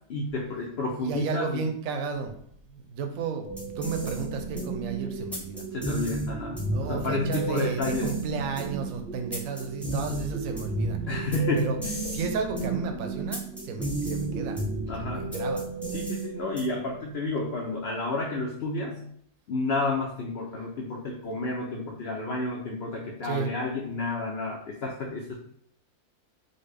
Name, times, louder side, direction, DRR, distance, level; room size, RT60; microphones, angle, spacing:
voice 1, 0.1-1.7 5.7-8.1 11.1-12.0 14.9-15.4 15.9-19.0 19.5-25.4, left 2 dB, 80° left, -1 dB, 0.5 m, -31 dB
voice 2, 1.0-2.3 2.7-5.6 6.7-11.0 11.5-11.8 12.1-14.6 15.0-15.6 23.2-23.5, right 5 dB, 70° right, 5 dB, 0.9 m, -33 dB
sound 1, 3.4-16.9, right 2 dB, ahead, 0.3 m, -33 dB
3.9 x 2.1 x 3.3 m, 0.64 s
omnidirectional pair, 1.7 m